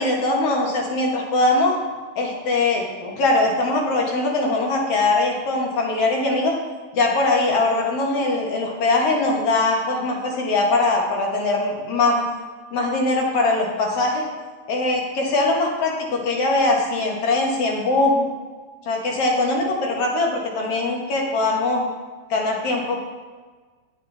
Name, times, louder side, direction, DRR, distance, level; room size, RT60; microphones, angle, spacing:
voice 1, 0.0-1.7 2.2-6.6 6.9-12.2 12.7-14.3 14.7-18.3 18.9-21.9 22.3-23.0, left 2 dB, 60° left, 0 dB, 2.2 m, -21 dB
9.9 x 9.7 x 3.4 m, 1.4 s
omnidirectional pair, 3.3 m